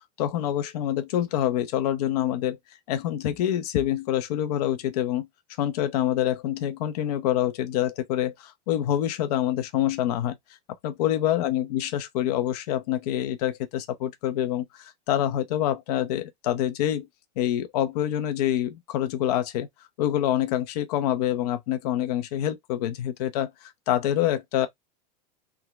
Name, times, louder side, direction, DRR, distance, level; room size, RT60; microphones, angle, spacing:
voice 1, 0.2-2.6 2.9-5.3 5.6-10.4 10.8-17.1 17.4-19.7 20.0-24.7, left 11 dB, 70° left, 0.8 m, -26 dB
3.7 x 2.3 x 2.9 m
supercardioid pair, 130°, 21 cm